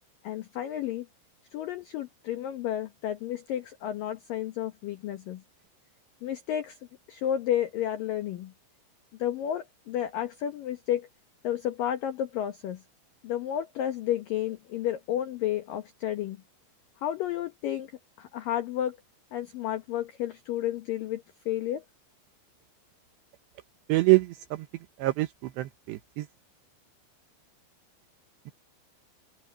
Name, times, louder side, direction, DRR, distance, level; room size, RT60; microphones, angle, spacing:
voice 1, 0.2-1.1 1.5-5.4 6.2-6.8 7.1-8.5 9.2-11.1 11.4-12.8 13.2-16.4 17.0-17.9 18.2-19.0 19.3-21.8, left 11 dB, 90° left, 1.9 m, -31 dB
voice 2, 23.9-24.3 25.0-25.3 25.6-26.2, right 21 dB, 80° right, 2.6 m, -23 dB
open air
omnidirectional pair, 5.7 m